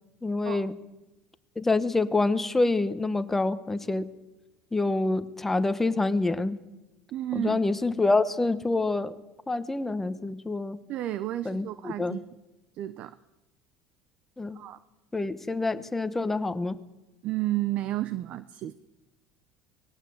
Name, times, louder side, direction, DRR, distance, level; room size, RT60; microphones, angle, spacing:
voice 1, 0.2-0.7 1.6-4.1 4.7-6.6 7.3-9.1 9.5-10.8 11.4-12.2 14.4-14.6 15.1-16.8, left 2 dB, 10° left, 11 dB, 1.2 m, -26 dB
voice 2, 7.1-7.6 10.9-12.2 12.7-13.1 14.5-14.8 17.2-18.7, right 14 dB, 50° right, 14 dB, 0.8 m, -31 dB
24.5 x 20.0 x 7.9 m, 1.0 s
cardioid pair, 135°, 3 cm